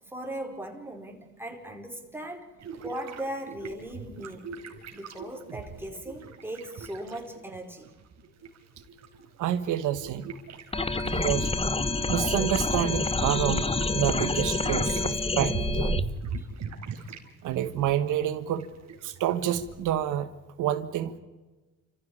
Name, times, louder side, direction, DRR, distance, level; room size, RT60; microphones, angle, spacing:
voice 1, 0.0-2.5 2.8-4.6 4.9-7.9 14.2-14.3 16.4-16.5, right 1 dB, 5° right, 4.9 m, -38 dB
sound 1, 2.6-7.6 7.8-17.3 17.5-20.0, right 5 dB, 65° right, 4.3 m, -40 dB
voice 2, 9.4-10.3 11.0-11.5 12.1-16.0 17.4-18.7 19.0-20.3 20.6-21.1, right 11 dB, 90° right, 1.4 m, -28 dB
sound 2, 10.7-16.0, left 3 dB, 20° left, 1.3 m, -27 dB
29.5 x 15.0 x 8.6 m
cardioid pair, 90°, 30 cm